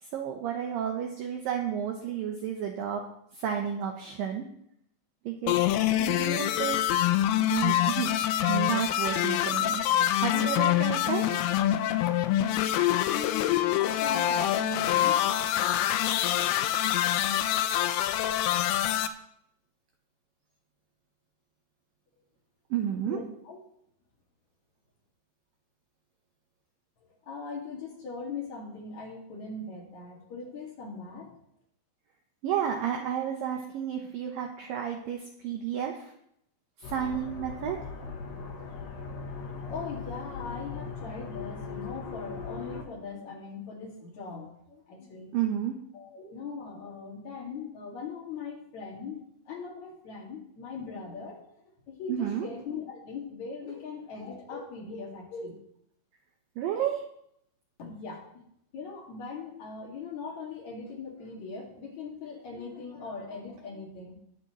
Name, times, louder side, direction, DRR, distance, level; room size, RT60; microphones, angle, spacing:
voice 1, 0.0-3.0 3.3-4.5 5.2-5.6 6.0-7.0 7.3-8.1 8.5-9.8 10.2-11.2 22.7-23.2 32.4-36.1 36.8-37.8 45.3-45.8 52.1-52.5 56.6-57.0, right 9 dB, 85° right, 3 dB, 2.0 m, -31 dB
sound 1, 5.5-19.1, left 12 dB, 85° left, 2.3 m, -25 dB
voice 2, 13.1-15.3 23.1-23.6 27.2-31.3 39.7-45.3 45.9-55.6 57.8-58.4 58.7-64.1, left 4 dB, 50° left, -3 dB, 2.9 m, -40 dB
sound 2, 36.8-42.8, left 5 dB, 70° left, 4.0 m, -39 dB
20.5 x 7.1 x 3.1 m, 0.73 s
omnidirectional pair, 5.2 m